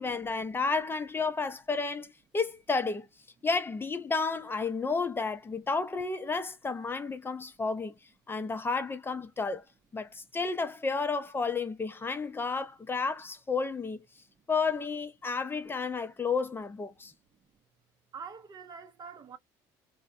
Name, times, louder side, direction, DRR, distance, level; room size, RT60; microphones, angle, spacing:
voice 1, 0.0-3.1 3.4-7.9 8.3-9.6 9.9-14.0 14.5-17.1, left 4 dB, 20° left, 0.5 m, -31 dB
voice 2, 18.1-19.4, right 6 dB, 40° right, 0.6 m, -45 dB
2.6 x 2.0 x 2.3 m
supercardioid pair, 80°, 10 cm